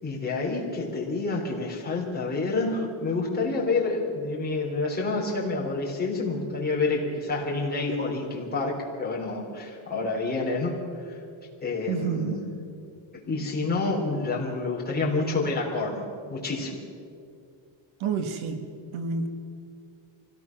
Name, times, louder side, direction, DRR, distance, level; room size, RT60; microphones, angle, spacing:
voice 1, 0.0-11.2 11.6-12.5 13.3-16.8, left 3 dB, 20° left, -3 dB, 4.0 m, -28 dB
voice 2, 11.9-12.5 18.0-18.6 18.9-19.3, right 5 dB, 75° right, 7 dB, 1.7 m, -29 dB
25.0 x 17.0 x 6.1 m, 2.5 s
cardioid pair, 160°, 49 cm